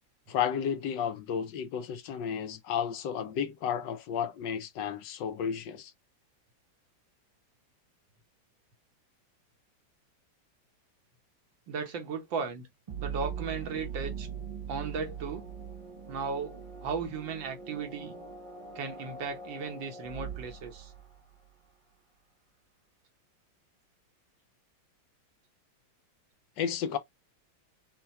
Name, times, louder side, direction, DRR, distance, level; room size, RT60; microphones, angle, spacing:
voice 1, 0.3-5.9 26.6-27.0, left 8 dB, 75° left, 1.2 m, -32 dB
voice 2, 11.7-12.7 13.0-14.3 14.7-15.4 16.1-18.2 18.8-20.9, right 5 dB, 75° right, 1.7 m, -36 dB
sound 1, 12.9-21.5, right 6 dB, 50° right, 0.3 m, -41 dB
5.6 x 2.2 x 2.8 m
omnidirectional pair, 2.1 m